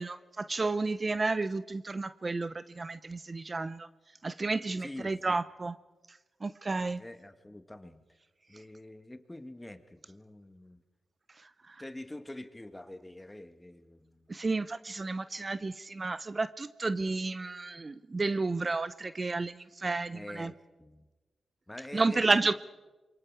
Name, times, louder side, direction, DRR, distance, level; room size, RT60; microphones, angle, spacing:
voice 1, 0.0-3.9 4.2-5.8 6.4-7.0 11.7-11.8 14.3-20.5 21.9-22.5, right 3 dB, 40° right, 14 dB, 0.7 m, -31 dB
voice 2, 4.8-5.4 7.0-8.0 8.5-10.8 11.8-14.3 20.1-21.1 21.7-22.5, left 1 dB, 15° left, 10 dB, 1.7 m, -46 dB
26.5 x 23.0 x 4.8 m, 1.2 s
supercardioid pair, 40°, 0 cm